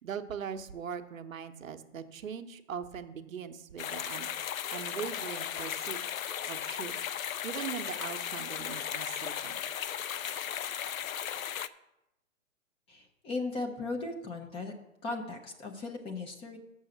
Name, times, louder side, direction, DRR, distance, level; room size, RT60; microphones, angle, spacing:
voice 1, 0.0-4.3 4.7-6.0 6.5-6.9 7.4-9.6, right 7 dB, 75° right, 7 dB, 0.9 m, -40 dB
sound 1, 3.8-11.7, left 9 dB, 80° left, 0.6 m, -36 dB
voice 2, 12.9-14.7 15.0-16.6, left 3 dB, 15° left, 3 dB, 0.7 m, -37 dB
6.4 x 6.3 x 7.1 m, 0.89 s
hypercardioid pair, 135°, 40 cm